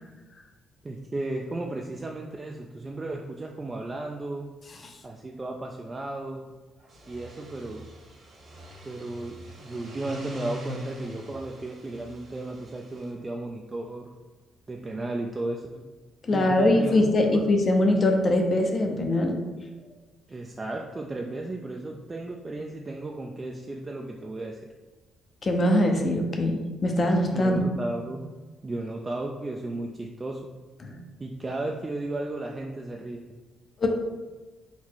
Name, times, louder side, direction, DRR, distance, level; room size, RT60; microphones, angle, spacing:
voice 1, 0.8-4.5 5.0-6.4 7.1-7.9 8.8-14.1 14.7-15.8 16.3-17.5 20.3-24.6 27.3-28.3 28.6-30.5 31.2-33.2, right 2 dB, 25° right, 1 dB, 0.3 m, -34 dB
sound 1, 6.8-13.1, equal, 55° right, 1.2 m, -43 dB
voice 2, 16.2-19.4 25.4-27.5 30.8-31.0 33.8-33.9, left 1 dB, 40° left, 3 dB, 0.6 m, -22 dB
4.1 x 2.0 x 4.4 m, 1.2 s
cardioid pair, 90°, 0 cm